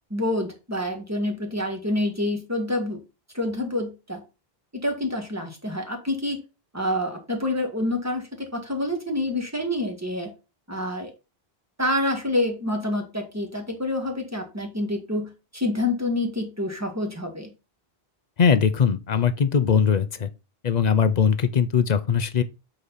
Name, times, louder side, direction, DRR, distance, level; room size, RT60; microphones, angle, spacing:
voice 1, 0.1-3.0 3.3-4.2 4.8-6.4 6.7-10.3 10.7-11.1 11.8-17.5, left 1 dB, 15° right, 1.7 m, -27 dB
voice 2, 18.4-20.3 20.6-22.4, left 6 dB, 45° left, 0.7 m, -20 dB
8.2 x 4.3 x 4.1 m
omnidirectional pair, 1.0 m